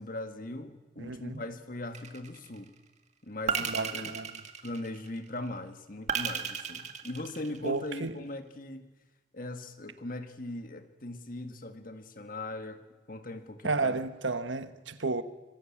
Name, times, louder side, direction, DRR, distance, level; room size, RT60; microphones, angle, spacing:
voice 1, 0.0-2.7 3.2-4.1 4.6-8.9 9.3-12.8 13.1-14.0, left 2 dB, 45° left, 1.8 m, -40 dB
voice 2, 1.0-1.4 3.7-4.3 7.6-8.2 13.6-15.2, right 3 dB, 80° right, 1.4 m, -32 dB
sound 1, 1.9-2.6 3.5-5.2 6.1-7.9, right 6 dB, 40° right, 1.9 m, -34 dB
25.5 x 23.0 x 8.7 m
head